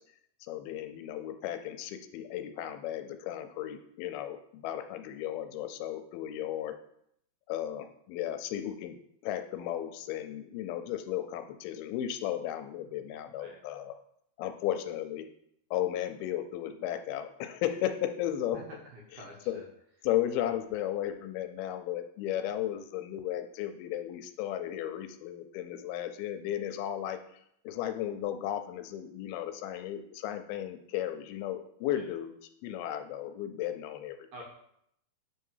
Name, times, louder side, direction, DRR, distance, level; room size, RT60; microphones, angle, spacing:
voice 1, 0.4-6.8 7.5-9.0 9.2-13.9 14.4-15.3 15.7-18.6 19.5-19.6 20.0-27.2 27.7-32.3 32.6-34.2, left 11 dB, 85° left, 8 dB, 2.4 m, -35 dB
voice 2, 18.5-19.6 31.9-32.1 34.3-34.4, right 1 dB, 70° right, -1 dB, 2.0 m, -47 dB
7.2 x 3.6 x 5.5 m, 0.72 s
omnidirectional pair, 4.4 m